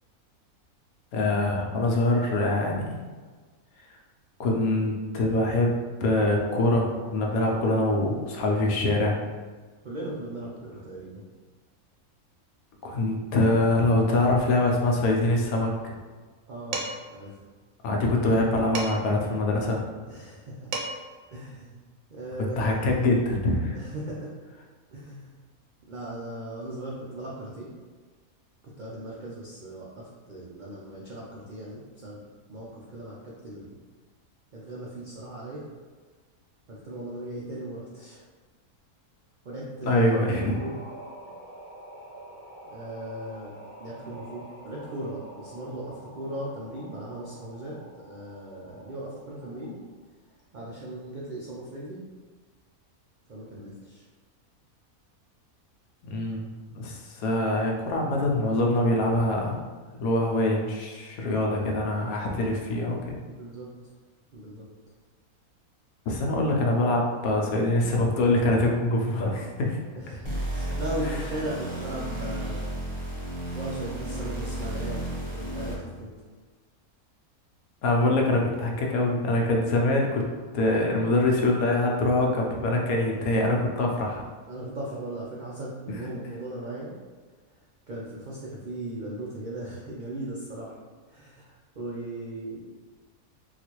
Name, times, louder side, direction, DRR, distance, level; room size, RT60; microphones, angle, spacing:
voice 1, 1.1-3.0 4.4-5.8 6.0-9.2 12.8-15.9 17.8-19.8 22.4-23.8 39.8-40.6 56.0-59.6 60.0-63.1 66.1-69.8 71.0-71.1 77.8-80.2 80.5-84.2, left 2 dB, 80° left, 0 dB, 1.1 m, -24 dB
voice 2, 9.8-11.2 16.5-16.8 17.1-17.4 20.1-20.7 21.3-21.8 22.1-22.8 23.7-24.3 24.9-25.3 25.9-27.7 28.8-32.2 32.5-33.8 34.5-35.7 36.7-38.2 39.4-40.7 41.2-41.3 42.6-49.7 50.5-52.0 53.3-54.0 63.3-63.7 64.3-64.7 69.9-72.6 73.5-75.1 75.3-76.1 84.5-86.9 87.9-90.7 91.1-92.6, right 1 dB, 90° right, -5 dB, 0.4 m, -38 dB
Dishes pots and pans, 16.7-17.2 18.7-19.2 20.4-20.5 20.7-21.2, right 3 dB, 70° right, 1.0 m, -33 dB
sound 1, 40.1-49.9, right 1 dB, 10° left, 0.8 m, -47 dB
sound 2, 70.2-76.0, right 1 dB, 25° right, 0.7 m, -33 dB
3.8 x 2.4 x 3.0 m, 1.4 s
omnidirectional pair, 1.5 m